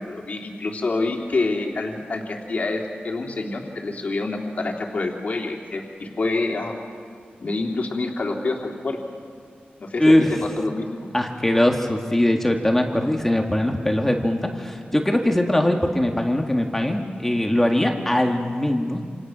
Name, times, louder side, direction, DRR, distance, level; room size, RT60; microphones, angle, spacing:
voice 1, 0.0-6.7 7.4-9.0 9.8-11.1, left 3 dB, 45° left, 1 dB, 3.1 m, -27 dB
voice 2, 11.1-19.0, left 1 dB, 10° left, 2 dB, 1.8 m, -21 dB
28.5 x 28.0 x 6.2 m, 2.1 s
wide cardioid pair, 160°, 4 cm